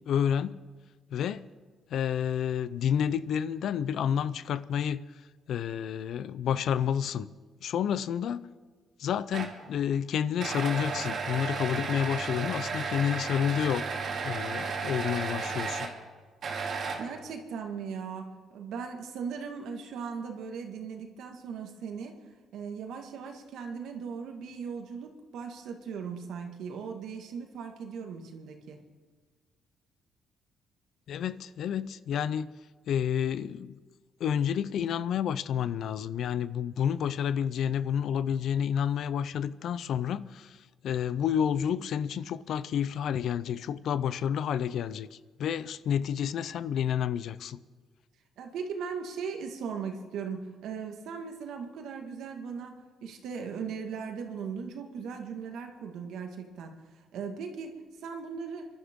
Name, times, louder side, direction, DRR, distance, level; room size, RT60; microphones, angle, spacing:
voice 1, 0.1-0.5 1.1-1.4 1.9-5.0 5.5-7.3 7.6-8.4 9.0-13.9 14.2-15.9 31.1-32.5 32.9-33.7 34.2-40.6 40.8-45.1 45.4-47.6, left 8 dB, 70° left, 0.6 m, -29 dB
sound 1, 9.3-9.7 10.4-16.0 16.4-17.3, right 4 dB, 60° right, 2.4 m, -33 dB
voice 2, 17.0-22.1 22.5-28.8 48.4-56.7 57.1-57.8 58.0-58.7, right 6 dB, 80° right, 1.8 m, -38 dB
29.5 x 11.5 x 3.7 m
cardioid pair, 90°, 0 cm